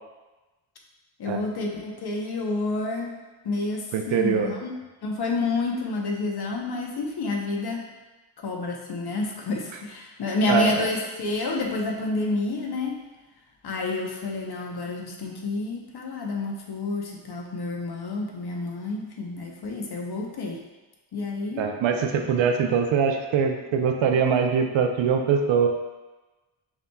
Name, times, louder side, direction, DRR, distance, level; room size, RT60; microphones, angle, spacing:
voice 1, 1.2-3.2 3.4-4.7 5.0-7.9 8.4-13.0 13.6-20.6 21.1-21.7, left 3 dB, 50° left, 0 dB, 0.8 m, -29 dB
voice 2, 3.9-4.5 10.5-10.9 21.6-25.7, right 6 dB, 65° right, 4 dB, 0.6 m, -23 dB
5.8 x 2.8 x 2.3 m, 1.1 s
cardioid pair, 70°, 49 cm